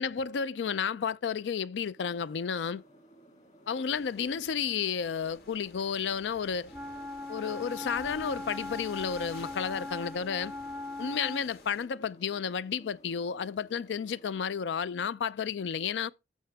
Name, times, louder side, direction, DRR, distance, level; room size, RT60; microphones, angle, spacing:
voice 1, 0.0-2.8 3.7-6.7 7.3-10.5 11.0-16.1, left 6 dB, 90° left, 0.4 m, -32 dB
sound 1, 2.0-14.3, right 1 dB, 40° left, 2.5 m, -57 dB
sound 2, 3.9-11.9, left 2 dB, 60° left, 2.0 m, -52 dB
Wind instrument woodwind instrument, 6.7-11.5, left 2 dB, 5° right, 0.4 m, -40 dB
12.5 x 6.4 x 3.4 m
head